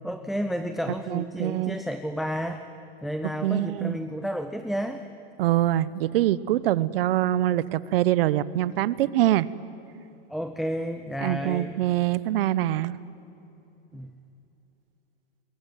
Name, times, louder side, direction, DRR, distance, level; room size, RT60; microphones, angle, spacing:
voice 1, 0.0-2.7 3.0-5.0 10.3-11.8 13.9-14.1, equal, ahead, 9 dB, 0.6 m, -31 dB
voice 2, 1.1-1.8 3.4-4.0 5.4-9.5 11.2-13.0, right 13 dB, 65° right, 19 dB, 0.9 m, -24 dB
25.5 x 21.5 x 9.3 m, 3.0 s
supercardioid pair, 145°, 32 cm